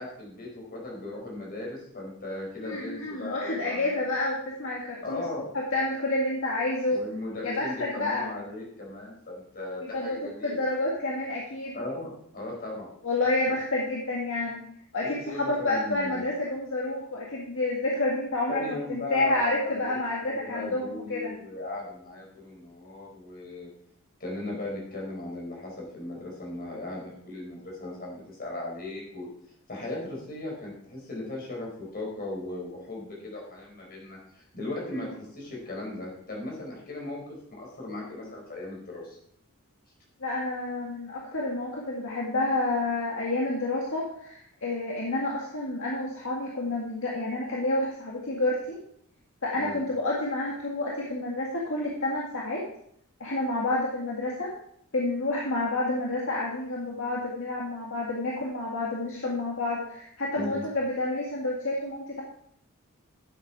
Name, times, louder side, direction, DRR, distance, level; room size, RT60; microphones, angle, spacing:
voice 1, 0.0-4.0 5.0-5.5 6.9-10.6 11.7-12.9 15.0-16.3 18.5-20.0 20.2-23.7 24.2-29.3 29.7-37.2 37.5-39.2 49.6-49.8 60.3-60.6, left 2 dB, 45° left, -2 dB, 4.6 m, -37 dB
voice 2, 2.6-5.3 5.5-7.0 7.4-8.3 9.9-10.2 10.4-11.7 13.0-14.6 14.9-18.6 18.9-21.4 34.9-35.1 40.2-48.8 49.4-52.6 53.2-54.5 54.9-62.2, left 2 dB, 65° left, -3 dB, 1.9 m, -29 dB
11.5 x 7.7 x 4.8 m, 0.69 s
head